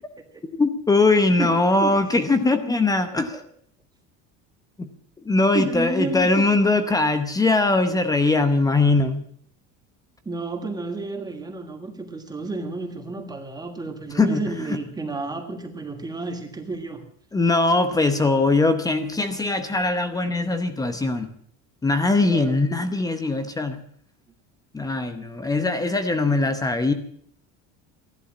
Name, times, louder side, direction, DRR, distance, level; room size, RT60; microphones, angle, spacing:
voice 1, 0.6-3.4 4.8-4.9 5.2-9.2 14.1-14.8 17.3-21.3 21.8-23.8 24.7-26.9, left 3 dB, 10° left, 9 dB, 0.8 m, -21 dB
voice 2, 1.4-2.0 3.3-3.4 5.5-6.5 10.2-17.0 22.2-22.6, right 3 dB, 10° right, 5 dB, 1.5 m, -31 dB
13.5 x 11.5 x 7.2 m, 0.62 s
cardioid pair, 165°, 34 cm